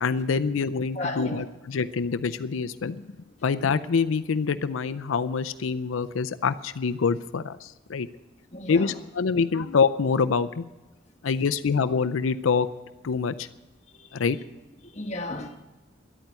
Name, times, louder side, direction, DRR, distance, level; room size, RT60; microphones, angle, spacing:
voice 1, 0.0-3.0 3.4-8.1 8.7-10.6 11.2-12.7 13.0-13.5 14.1-14.4, left 5 dB, 90° left, 0.5 m, -25 dB
voice 2, 0.9-1.4 8.5-9.0 13.9-14.3 14.8-15.6, left 1 dB, 35° left, 1.3 m, -34 dB
11.0 x 8.9 x 9.4 m
head